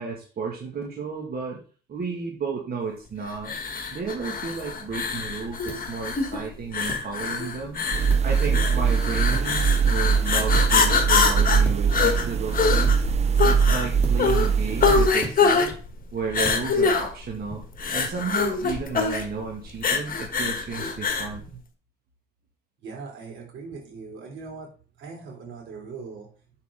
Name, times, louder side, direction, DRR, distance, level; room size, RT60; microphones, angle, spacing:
voice 1, 0.0-1.6 1.9-3.6 3.9-13.0 13.4-15.7 16.1-17.6 17.9-21.6, right 5 dB, 50° right, -1 dB, 2.1 m, -33 dB
sound 1, 3.4-21.3, left 5 dB, 45° left, 1.4 m, -25 dB
sound 2, 5.6-17.9, equal, 5° left, 2.8 m, -43 dB
sound 3, 7.9-15.1, right 6 dB, 35° right, 0.4 m, -22 dB
voice 2, 22.8-24.7 25.0-26.3, right 4 dB, 80° right, 0 dB, 3.6 m, -40 dB
7.2 x 6.6 x 3.8 m, 0.38 s
cardioid pair, 90°, 20 cm